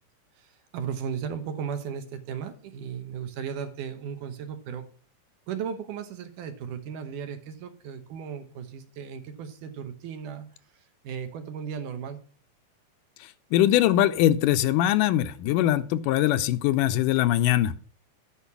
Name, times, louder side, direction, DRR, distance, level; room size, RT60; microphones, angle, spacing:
voice 1, 0.7-4.9 5.5-10.5 11.0-12.2, right 7 dB, 80° right, 8 dB, 2.6 m, -35 dB
voice 2, 13.5-17.7, left 13 dB, 85° left, 13 dB, 2.2 m, -22 dB
10.5 x 4.7 x 6.9 m, 0.40 s
omnidirectional pair, 3.7 m